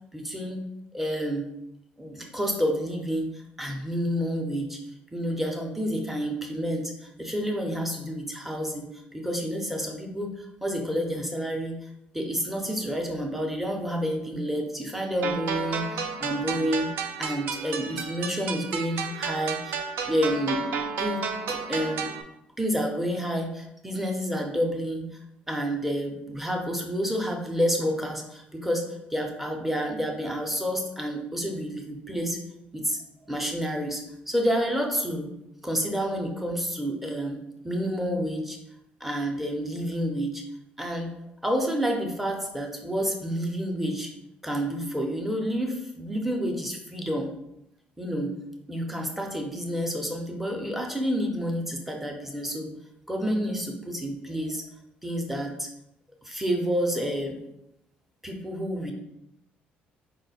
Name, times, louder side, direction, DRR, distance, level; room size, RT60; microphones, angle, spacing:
voice 1, 0.1-1.5 2.0-3.3 3.6-4.8 5.1-11.9 12.1-16.9 17.2-20.6 21.0-22.1 22.6-25.1 25.5-32.4 32.7-33.0 33.3-35.3 35.6-37.4 37.6-38.6 39.0-40.4 40.8-41.2 41.4-44.1 44.4-47.3 48.0-48.4 48.7-52.7 53.1-54.6 55.0-55.7 56.2-57.4 58.2-58.9, equal, 5° right, 2 dB, 0.6 m, -29 dB
sound 1, 15.2-22.2, right 5 dB, 70° right, 0.4 m, -32 dB
4.4 x 2.1 x 4.1 m, 0.84 s
cardioid pair, 150°, 4 cm